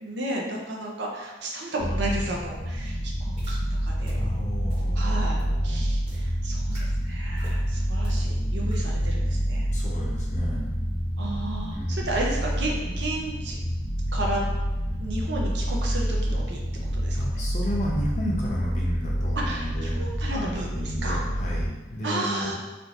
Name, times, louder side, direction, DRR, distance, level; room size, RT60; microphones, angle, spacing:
voice 1, 0.0-3.0 3.5-4.3 5.0-9.7 11.2-13.6 14.1-14.4 15.0-16.6 16.9-17.2 19.5-20.7 21.0-21.2 22.0-22.5, right 1 dB, 70° right, -1 dB, 0.6 m, -33 dB
sound 1, 1.8-21.7, equal, 85° left, 0.9 m, -27 dB
sound 2, 3.4-3.5 4.0-4.1 4.7-4.8 5.4-5.5 6.0-6.2 6.7-6.8 7.4-7.6 8.0-8.1 8.7-8.8, equal, 30° right, 1.2 m, -43 dB
voice 2, 4.1-5.9 8.5-9.4 9.7-10.8 11.7-12.2 17.2-22.5, equal, 40° left, -4 dB, 0.6 m, -33 dB
3.5 x 2.5 x 2.8 m, 1.1 s
head